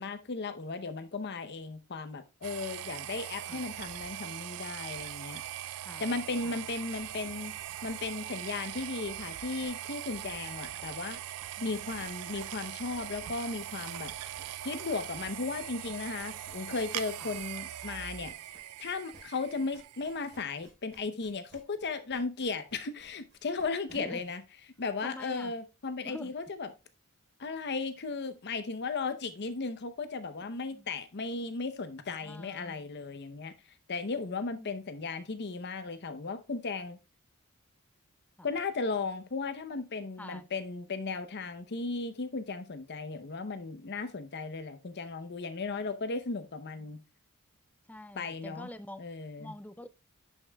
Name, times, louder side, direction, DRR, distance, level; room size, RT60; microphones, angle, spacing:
voice 1, 0.0-5.4 6.0-7.5 7.8-11.2 11.6-14.1 14.6-18.3 18.8-24.4 24.8-26.7 27.4-33.5 33.9-37.0 38.4-47.0 48.1-48.7 49.0-49.5, left 4 dB, 50° left, 0.7 m, -36 dB
sound 1, 2.4-20.4, right 13 dB, 80° right, 0.4 m, -41 dB
voice 2, 5.8-6.1 6.4-6.6 11.6-11.7 17.2-17.3 23.9-24.2 25.0-25.5 26.0-26.3 30.6-30.9 32.2-32.9 34.6-34.7 38.4-38.5 40.2-40.5 47.9-49.0 49.4-49.9, left 1 dB, 5° left, 0.4 m, -45 dB
sound 2, 6.3-24.3, right 1 dB, 45° right, 4.0 m, -57 dB
11.0 x 5.5 x 2.2 m
head